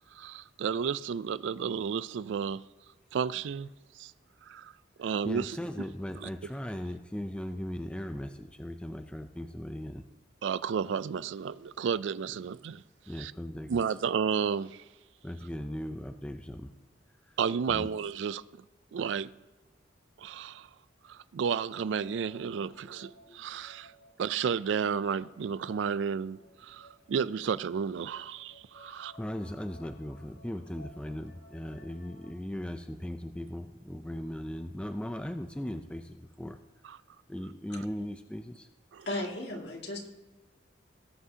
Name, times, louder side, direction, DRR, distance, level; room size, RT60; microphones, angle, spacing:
voice 1, 0.1-2.6 3.1-3.7 4.0-4.1 4.4-4.7 5.0-5.5 10.4-12.8 13.2-13.3 13.7-14.8 17.4-18.4 18.9-19.3 20.2-20.7 21.1-23.9 24.2-29.1 38.9-39.1, right 7 dB, 80° right, 0.3 m, -32 dB
voice 2, 5.0-10.1 13.1-13.8 15.2-16.7 17.2-17.4 17.7-17.9 28.9-36.6 37.3-38.7, equal, 5° left, 0.4 m, -38 dB
sound 1, 21.4-32.3, left 1 dB, 85° left, 4.1 m, -58 dB
voice 3, 39.1-40.1, left 1 dB, 65° left, 2.1 m, -35 dB
18.5 x 8.1 x 2.8 m
head